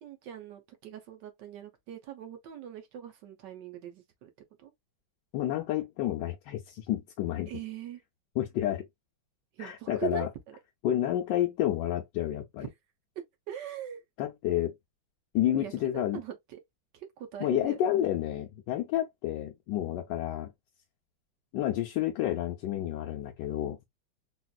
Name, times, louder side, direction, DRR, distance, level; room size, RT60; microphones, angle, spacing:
voice 1, 0.0-4.3 4.6-4.7 7.5-8.0 9.6-10.6 13.5-14.0 15.5-16.6 16.9-17.8, right 10 dB, 70° right, 1.2 m, -41 dB
voice 2, 5.3-7.5 8.4-8.8 9.6-10.3 10.8-12.7 14.2-14.7 15.3-16.2 17.4-20.5 21.5-23.8, left 12 dB, 75° left, 1.1 m, -30 dB
4.1 x 2.4 x 2.2 m
omnidirectional pair, 2.1 m